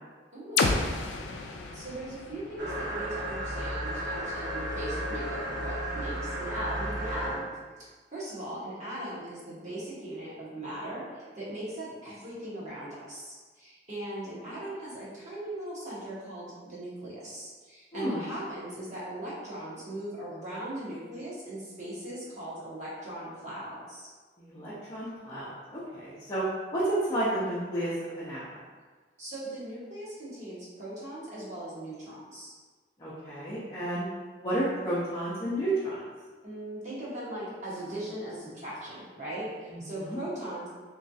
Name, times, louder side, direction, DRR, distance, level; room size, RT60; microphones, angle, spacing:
voice 1, 0.3-0.9 1.7-7.5 7.8-24.1 29.2-32.5 36.4-40.7, right 1 dB, 40° right, -9 dB, 1.3 m, -39 dB
sound 1, 0.6-4.4, left 3 dB, 85° left, 0.4 m, -32 dB
sound 2, 2.6-7.5, right 1 dB, 65° right, 1.2 m, -34 dB
voice 2, 24.4-26.4 26.7-28.4 33.0-34.0 34.4-36.0 39.7-40.2, right 1 dB, 25° left, -11 dB, 0.8 m, -31 dB
3.6 x 3.2 x 2.7 m, 1.4 s
head